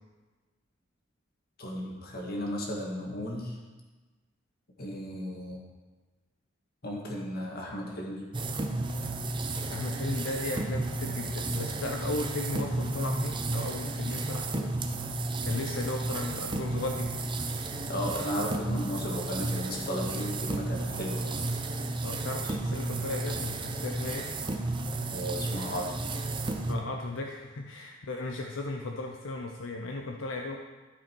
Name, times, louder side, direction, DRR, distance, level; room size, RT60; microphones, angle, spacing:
voice 1, 1.6-3.6 4.8-5.6 6.8-8.4 17.9-21.4 25.1-26.0, equal, 55° left, -1 dB, 1.6 m, -35 dB
sound 1, 8.3-26.7, right 2 dB, 25° right, 0.6 m, -33 dB
voice 2, 9.3-14.8 15.4-17.2 22.0-24.3 26.7-30.6, left 2 dB, 80° left, 2 dB, 0.6 m, -36 dB
12.0 x 5.1 x 4.5 m, 1.3 s
head